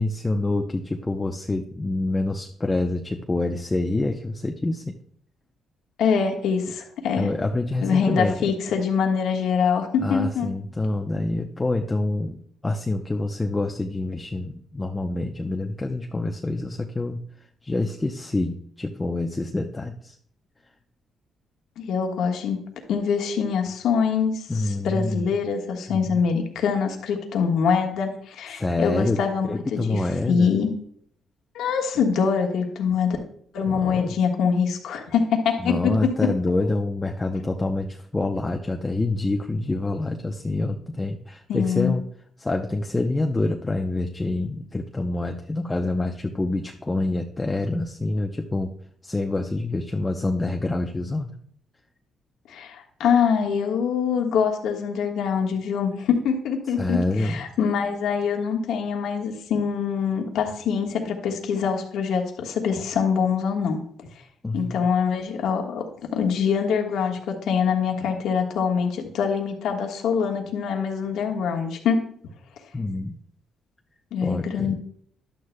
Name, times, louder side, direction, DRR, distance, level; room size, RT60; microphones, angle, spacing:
voice 1, 0.0-4.9 7.2-8.5 10.0-12.4 12.6-17.2 17.6-20.1 24.5-25.3 25.8-26.2 28.5-30.5 33.7-34.2 35.6-42.0 42.4-48.7 49.0-51.3 56.8-57.4 64.4-64.9 72.7-73.2 74.2-74.7, left 2 dB, 20° left, 2 dB, 0.7 m, -26 dB
voice 2, 6.0-7.3 7.8-10.5 21.8-22.6 22.9-30.0 30.3-30.7 31.5-33.2 33.5-35.9 36.2-36.3 41.5-42.0 52.5-63.8 64.5-65.8 66.1-72.0 74.1-74.7, left 6 dB, 80° left, 2 dB, 1.4 m, -24 dB
11.5 x 9.4 x 2.2 m, 0.63 s
cardioid pair, 90°, 0 cm